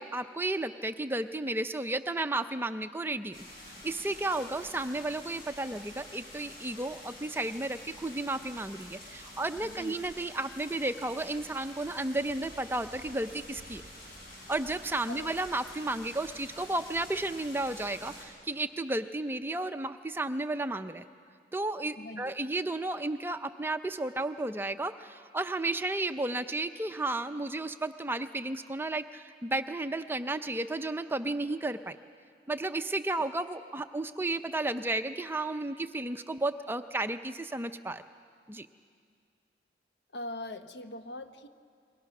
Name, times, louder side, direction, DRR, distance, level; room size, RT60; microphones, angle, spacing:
voice 1, 0.0-13.8 14.5-21.0 21.5-32.0 32.5-38.0 38.5-38.7, right 2 dB, 15° right, 9 dB, 0.5 m, -33 dB
sound 1, 3.3-18.2, left 1 dB, 55° left, 6.6 m, -48 dB
voice 2, 9.6-9.9 15.1-15.3 22.0-22.3 33.1-33.2 40.1-41.5, left 1 dB, 75° left, 8 dB, 1.1 m, -41 dB
29.0 x 22.0 x 6.0 m, 2.2 s
head